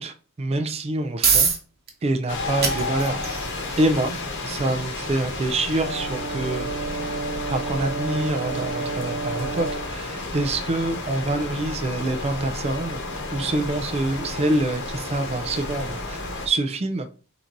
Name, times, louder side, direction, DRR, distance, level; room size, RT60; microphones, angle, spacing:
voice 1, 0.0-1.5 2.0-3.2 3.8-4.2 4.4-6.7 7.5-13.0 13.3-16.2 16.4-17.1, right 2 dB, 30° right, 7 dB, 0.4 m, -26 dB
sound 1, 0.7-15.6, right 5 dB, 50° right, 1.0 m, -32 dB
sound 2, 2.3-16.5, left 2 dB, 55° left, 1.1 m, -32 dB
Brass instrument, 5.8-9.9, right 4 dB, 70° right, 0.6 m, -31 dB
4.4 x 3.9 x 2.6 m, 0.37 s
head